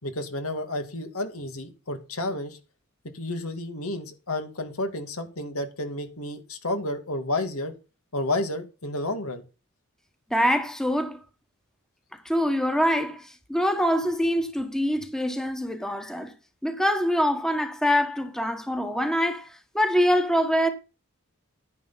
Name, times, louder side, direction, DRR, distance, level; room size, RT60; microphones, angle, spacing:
voice 1, 0.0-2.6 3.1-7.7 8.1-9.4, left 1 dB, 80° left, 2.5 m, -31 dB
voice 2, 10.3-11.2 12.2-16.3 16.6-20.7, equal, 5° left, 1.5 m, -24 dB
10.5 x 10.5 x 4.3 m
head